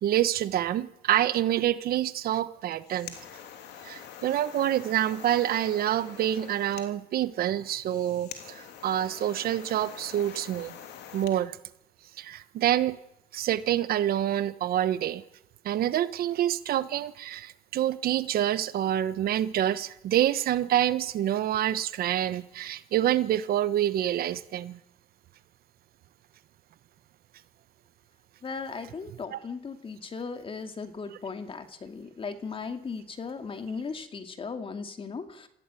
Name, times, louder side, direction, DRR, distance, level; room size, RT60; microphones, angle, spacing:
voice 1, 0.0-3.1 3.8-10.7 11.1-11.6 12.2-13.0 13.3-15.2 15.6-24.8 29.3-29.4, right 12 dB, 65° right, 14 dB, 1.2 m, -27 dB
sound 1, 2.6-11.4, left 9 dB, 80° left, 3.1 m, -45 dB
voice 2, 28.4-35.5, left 5 dB, 30° left, 8 dB, 2.6 m, -37 dB
26.5 x 15.5 x 9.2 m, 0.83 s
cardioid pair, 110°, 17 cm